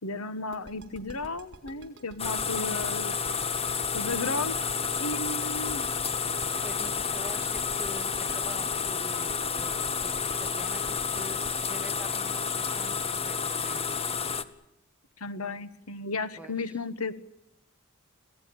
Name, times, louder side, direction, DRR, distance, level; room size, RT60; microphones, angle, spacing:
voice 1, 0.0-3.4 3.9-4.5 5.0-5.8 15.2-17.1, left 3 dB, 85° left, 14 dB, 1.4 m, -34 dB
sound 1, 0.5-13.3, right 1 dB, 55° right, 4.1 m, -47 dB
sound 2, 2.2-14.4, left 6 dB, 30° left, 1.2 m, -30 dB
voice 2, 2.5-3.0 6.6-13.8 16.4-16.8, equal, 5° right, 6 dB, 1.8 m, -46 dB
27.0 x 17.0 x 8.7 m, 0.84 s
head